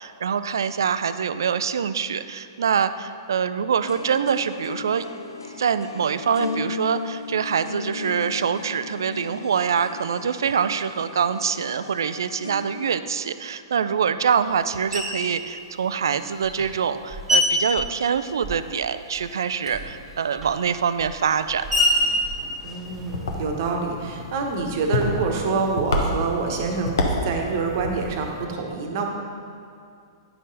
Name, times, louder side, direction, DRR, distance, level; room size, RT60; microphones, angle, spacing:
voice 1, 0.0-5.0 5.6-21.8, right 7 dB, 70° right, 12 dB, 0.3 m, -25 dB
sound 1, 3.8-12.9, left 4 dB, 80° left, 0.7 m, -36 dB
Screech, 14.9-15.4 16.1-18.8 19.1-23.4, left 1 dB, 10° right, 1.5 m, -27 dB
voice 2, 22.6-27.0 27.2-29.1, right 4 dB, 50° right, 2 dB, 1.1 m, -26 dB
sound 2, 22.8-28.4, left 2 dB, 65° left, 1.0 m, -29 dB
9.4 x 5.5 x 4.0 m, 2.4 s
figure-of-eight pair, 110°, 2 cm